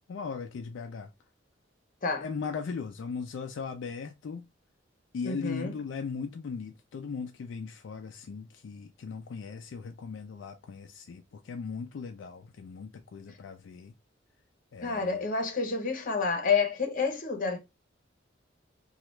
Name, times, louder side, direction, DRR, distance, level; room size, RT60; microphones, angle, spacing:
voice 1, 0.1-1.1 2.2-4.5 5.1-13.9 14.7-15.2, left 5 dB, 75° left, 0.4 m, -38 dB
voice 2, 5.2-5.7 14.8-17.6, left 5 dB, 45° left, 0.9 m, -29 dB
2.9 x 2.3 x 3.1 m
head